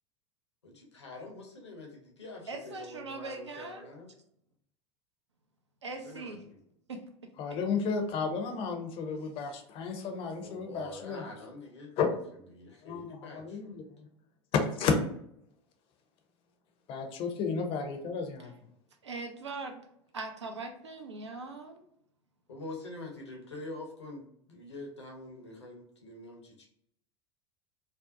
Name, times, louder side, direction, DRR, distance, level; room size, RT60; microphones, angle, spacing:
voice 1, 0.6-4.1 6.0-6.6 10.4-12.0 12.5-13.8 22.5-24.2 24.5-26.7, left 2 dB, 75° left, 0 dB, 0.7 m, -45 dB
voice 2, 2.5-3.9 5.8-6.4 6.9-7.0 19.0-19.9 20.1-21.8, right 3 dB, 80° right, 4 dB, 0.4 m, -40 dB
voice 3, 7.4-11.3 12.0-12.1 12.8-14.1 14.5-15.0 16.9-18.5, left 5 dB, 40° left, 5 dB, 0.5 m, -32 dB
2.6 x 2.0 x 2.5 m, 0.72 s
figure-of-eight pair, 80°, 14 cm